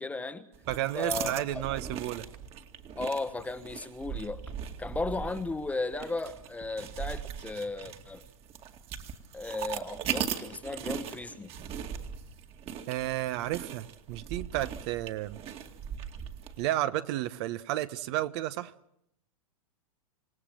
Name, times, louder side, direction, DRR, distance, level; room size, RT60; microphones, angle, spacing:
voice 1, 0.0-0.5 0.9-1.6 2.9-4.4 4.8-8.2 9.3-11.5, left 3 dB, 10° left, 1.2 m, -35 dB
sound 1, 0.5-16.7, right 8 dB, 35° right, 2.3 m, -39 dB
voice 2, 0.7-2.3 12.9-15.4 16.6-18.7, right 14 dB, 50° right, 1.2 m, -32 dB
27.5 x 18.0 x 7.8 m
hypercardioid pair, 120°, 17 cm